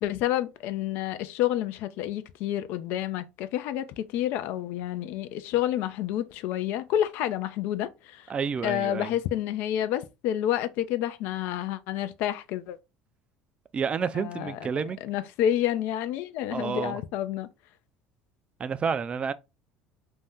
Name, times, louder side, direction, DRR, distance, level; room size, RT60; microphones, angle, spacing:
voice 1, 0.0-8.3 8.6-12.8 14.0-14.6 15.0-17.5, left 11 dB, 65° left, 0.4 m, -29 dB
voice 2, 8.3-9.2 13.7-15.0 16.5-17.0 18.6-19.3, right 6 dB, 30° right, 0.4 m, -30 dB
2.6 x 2.1 x 3.5 m
supercardioid pair, 85°, 4 cm